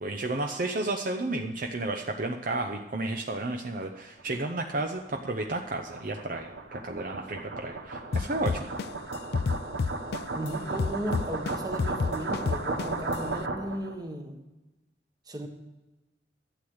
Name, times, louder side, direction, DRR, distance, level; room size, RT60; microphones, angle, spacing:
voice 1, 0.0-8.7, right 2 dB, 50° right, 4 dB, 0.8 m, -32 dB
sound 1, 4.0-13.9, right 3 dB, 75° right, 1.4 m, -35 dB
sound 2, 8.1-10.5 10.8-13.1, left 4 dB, 55° left, 0.4 m, -29 dB
voice 2, 10.3-14.4 15.3-15.5, right 1 dB, 20° right, 4 dB, 1.4 m, -36 dB
12.0 x 8.0 x 6.4 m, 1.1 s
head